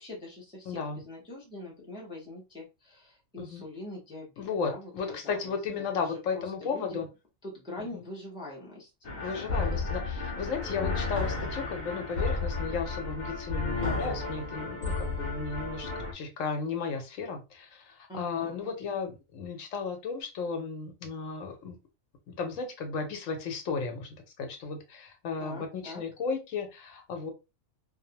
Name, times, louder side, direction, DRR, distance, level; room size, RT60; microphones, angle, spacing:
voice 1, 0.0-7.0 7.4-9.9 13.9-14.1 18.1-18.7 25.4-26.0, left 2 dB, 5° right, -3 dB, 0.5 m, -44 dB
voice 2, 0.7-1.0 3.4-3.6 4.4-7.1 7.8-8.0 9.2-21.8 22.3-24.1 24.4-27.3, left 5 dB, 75° left, 4 dB, 1.0 m, -34 dB
sound 1, 9.0-16.1, left 3 dB, 50° left, 0.6 m, -32 dB
2.6 x 2.0 x 2.7 m, 0.26 s
omnidirectional pair, 1.4 m